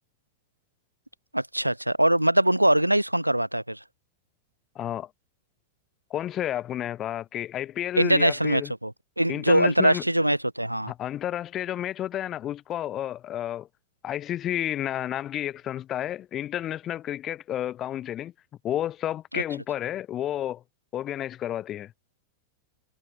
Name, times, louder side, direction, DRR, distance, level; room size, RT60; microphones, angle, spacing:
voice 1, 1.3-3.8 8.0-8.9 9.2-10.9 19.3-19.4, right 1 dB, 90° right, 0.4 m, -22 dB
voice 2, 4.7-5.1 6.1-8.7 9.3-10.0 10.9-13.7 14.0-18.3 18.6-20.6 20.9-21.9, left 12 dB, 30° left, 1.4 m, -31 dB
figure-of-eight pair, 90°, 0 cm